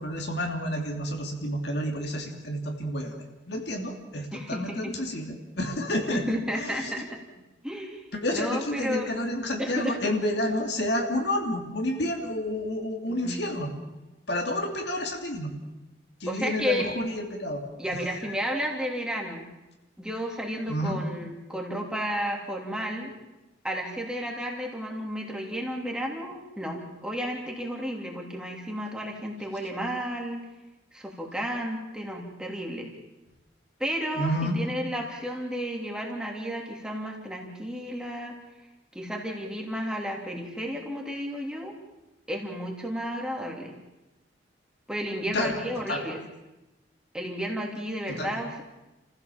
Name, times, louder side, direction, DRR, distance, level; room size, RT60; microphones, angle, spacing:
voice 1, 0.0-6.2 6.5-6.9 8.1-13.7 14.3-15.5 16.2-17.6 18.1-18.3 20.7-21.0 34.1-34.6 45.3-46.0 48.1-48.3, left 1 dB, 65° left, 2 dB, 3.1 m, -30 dB
voice 2, 4.3-4.9 6.1-7.1 7.6-8.0 8.3-9.1 9.6-10.1 13.1-13.5 16.3-16.9 17.8-19.5 20.0-23.1 23.6-30.4 30.9-32.9 33.8-38.3 38.9-41.7 42.3-43.8 44.9-46.2 47.1-48.6, equal, 5° right, 0 dB, 3.0 m, -32 dB
29.5 x 15.5 x 7.3 m, 1.0 s
head